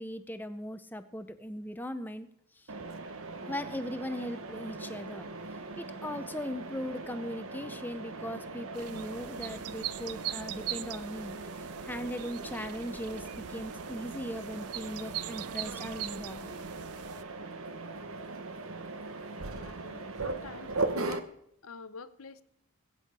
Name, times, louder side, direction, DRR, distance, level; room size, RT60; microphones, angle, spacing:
voice 1, 0.0-2.3 2.5-2.7 3.5-5.3 5.8-16.6, equal, 10° left, 10 dB, 0.6 m, -39 dB
Mechanisms, 2.7-21.2, right 3 dB, 65° right, 1.0 m, -40 dB
sound 1, 8.7-17.2, right 13 dB, 85° right, 0.5 m, -41 dB
voice 2, 19.4-21.3 21.6-22.4, left 4 dB, 70° left, 13 dB, 0.8 m, -47 dB
21.5 x 8.4 x 4.8 m, 0.76 s
head